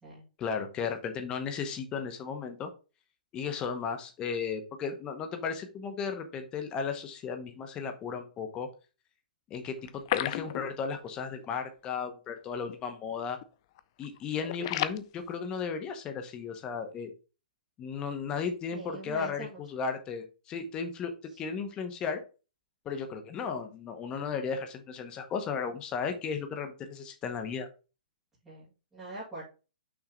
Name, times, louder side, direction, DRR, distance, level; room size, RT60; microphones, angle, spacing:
voice 1, 0.4-2.7 3.3-8.7 9.5-13.4 14.0-17.1 17.8-21.1 21.4-22.2 22.8-27.7, left 6 dB, 15° left, 6 dB, 1.0 m, -35 dB
sound 1, 9.8-11.1 11.4-11.5 11.8-11.9 12.6-12.8 13.1-13.4 13.8-15.0, left 13 dB, 35° left, 0.4 m, -33 dB
voice 2, 18.7-19.6 28.4-29.4, right 2 dB, 5° right, -11 dB, 2.2 m, -42 dB
6.0 x 3.6 x 5.1 m, 0.32 s
hypercardioid pair, 160°, 5 cm